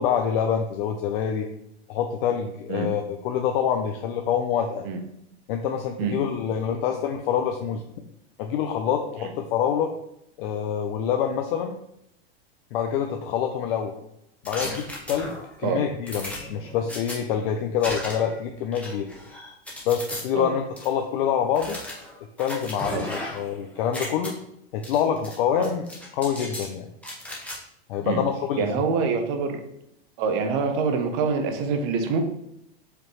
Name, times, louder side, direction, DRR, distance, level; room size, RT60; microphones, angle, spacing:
voice 1, 0.0-1.5 1.9-4.9 5.5-7.8 8.4-9.9 10.4-11.7 12.7-13.9 14.4-19.1 19.9-21.8 22.4-24.4 24.7-25.8 26.1-26.9 27.9-28.8, left 8 dB, 60° left, 4 dB, 0.5 m, -26 dB
sound 1, 14.5-15.6 16.1-17.2 17.8-18.4 18.7-20.2 20.8-20.9 21.5-23.5 23.8-24.3 24.8-25.4 25.6-26.7 27.0-27.6, left 1 dB, 5° left, 1.0 m, -36 dB
voice 2, 28.6-29.6 30.2-32.2, right 5 dB, 55° right, 6 dB, 0.9 m, -25 dB
4.9 x 3.1 x 3.0 m, 0.79 s
hypercardioid pair, 115°, 31 cm